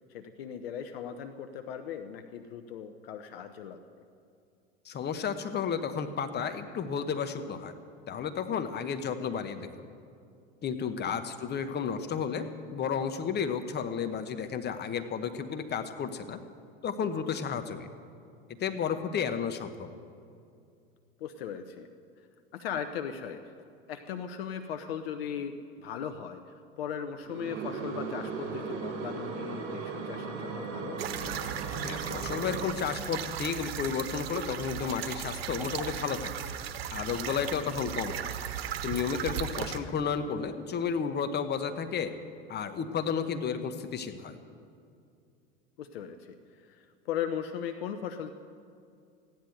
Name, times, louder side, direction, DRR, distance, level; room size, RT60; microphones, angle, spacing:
voice 1, 0.1-3.8 10.9-11.1 21.2-21.9 22.5-23.4 23.9-31.0 45.8-48.3, left 8 dB, 75° left, 8 dB, 0.9 m, -38 dB
voice 2, 4.8-7.7 8.1-9.9 10.6-16.4 16.8-17.9 18.5-19.9 31.8-36.5 36.9-38.3 38.8-42.1 42.5-44.4, left 6 dB, 35° left, 9 dB, 1.1 m, -32 dB
sound 1, 27.3-32.6, right 4 dB, 45° right, 4.2 m, -37 dB
sound 2, 31.0-39.8, right 9 dB, 75° right, 1.1 m, -36 dB
15.0 x 10.5 x 7.9 m, 2.4 s
hypercardioid pair, 85°, 30 cm